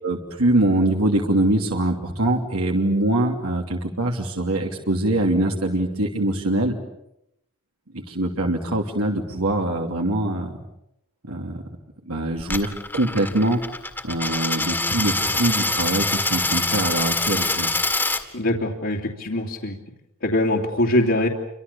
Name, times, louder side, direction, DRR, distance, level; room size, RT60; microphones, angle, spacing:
voice 1, 0.0-6.8 7.9-10.5 11.2-11.6 12.1-13.6 14.0-17.7, right 1 dB, 85° right, 1 dB, 3.0 m, -23 dB
Coin (dropping), 12.4-18.2, left 2 dB, 10° left, 2.0 m, -25 dB
voice 2, 18.3-19.8 20.2-21.3, left 1 dB, 60° left, -4 dB, 2.8 m, -22 dB
29.5 x 25.5 x 7.1 m, 0.81 s
head